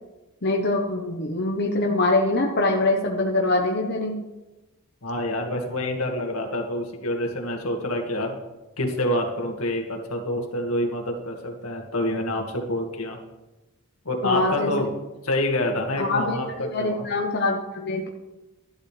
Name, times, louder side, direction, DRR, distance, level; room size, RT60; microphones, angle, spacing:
voice 1, 0.4-4.3 14.2-14.7 16.0-18.1, left 2 dB, 50° left, 0 dB, 1.2 m, -24 dB
voice 2, 5.0-8.4 8.8-13.2 14.1-14.9 15.2-17.1, left 1 dB, 85° left, 2 dB, 2.0 m, -27 dB
13.0 x 11.5 x 3.4 m, 1.0 s
head